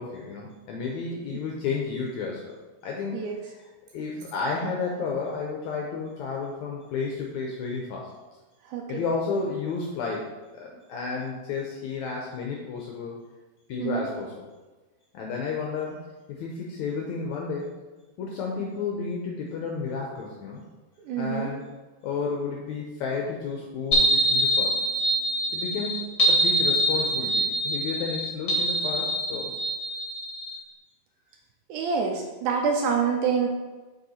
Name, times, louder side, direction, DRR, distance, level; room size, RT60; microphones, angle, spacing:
voice 1, 0.0-2.6 2.8-8.1 8.9-13.2 13.7-14.5 15.1-16.0 16.3-17.7 18.2-20.6 21.2-21.6 22.0-24.8 25.5-29.5, left 4 dB, 80° left, -1 dB, 1.6 m, -32 dB
voice 2, 8.7-9.0 13.8-14.1 21.0-21.5 31.7-33.5, right 6 dB, 80° right, 2 dB, 1.8 m, -26 dB
sound 1, 23.9-30.6, right 1 dB, 45° left, 0.8 m, -24 dB
6.6 x 4.7 x 4.1 m, 1.2 s
omnidirectional pair, 4.1 m